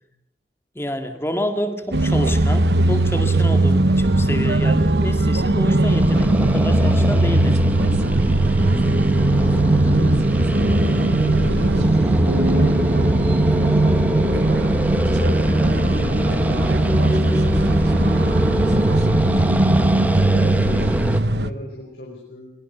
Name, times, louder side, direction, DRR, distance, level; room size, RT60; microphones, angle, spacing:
voice 1, 0.8-7.7, equal, 15° left, 7 dB, 2.1 m, -28 dB
sound 1, 1.9-21.5, right 2 dB, 75° right, 1.0 m, -19 dB
sound 2, 5.9-21.2, equal, 10° right, 1.0 m, -23 dB
voice 2, 8.5-15.3 15.6-17.8 19.8-22.5, left 1 dB, 60° left, -2 dB, 5.4 m, -37 dB
23.0 x 22.0 x 6.9 m, 0.72 s
head